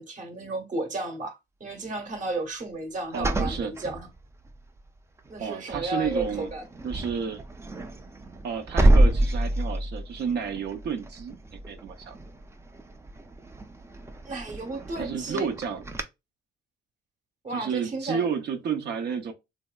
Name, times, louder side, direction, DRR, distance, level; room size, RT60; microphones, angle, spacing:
voice 1, 0.0-4.1 5.3-6.7 14.2-15.5 17.4-18.3, right 2 dB, 40° right, 0.9 m, -33 dB
sound 1, 3.1-4.7 5.2-5.5 5.7-16.0, right 1 dB, 15° right, 0.4 m, -28 dB
voice 2, 3.1-3.7 5.4-6.5 6.8-7.4 8.4-11.3 11.7-12.2 15.0-15.9 17.5-19.3, right 6 dB, 60° right, 0.6 m, -31 dB
3.1 x 2.7 x 2.2 m
cardioid pair, 90°, 20 cm